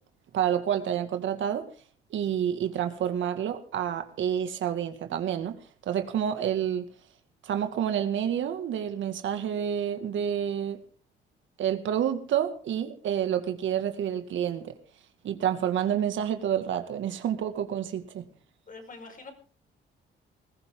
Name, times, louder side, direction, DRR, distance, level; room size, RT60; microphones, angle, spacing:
voice 1, 0.3-1.7 2.1-5.6 5.8-6.9 7.4-10.8 11.6-14.7 15.2-18.2, right 9 dB, 75° right, 2.2 m, -29 dB
voice 2, 18.7-19.3, left 3 dB, 45° left, 5.4 m, -44 dB
20.5 x 15.5 x 3.8 m
cardioid pair, 90°, 20 cm